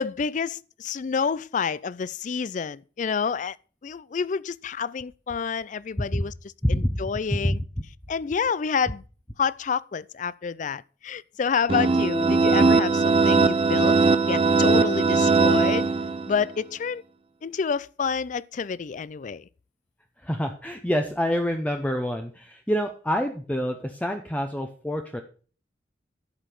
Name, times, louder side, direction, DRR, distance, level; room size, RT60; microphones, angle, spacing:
voice 1, 0.0-3.6 3.8-7.6 8.1-9.0 9.4-14.0 14.3-15.9 16.3-17.0 17.4-19.5, left 6 dB, 45° left, 0.4 m, -28 dB
voice 2, 6.6-7.0 7.4-7.6 20.2-25.2, equal, 10° left, 0.7 m, -27 dB
sound 1, 11.7-16.4, right 4 dB, 30° right, 0.6 m, -20 dB
11.5 x 5.2 x 5.9 m
head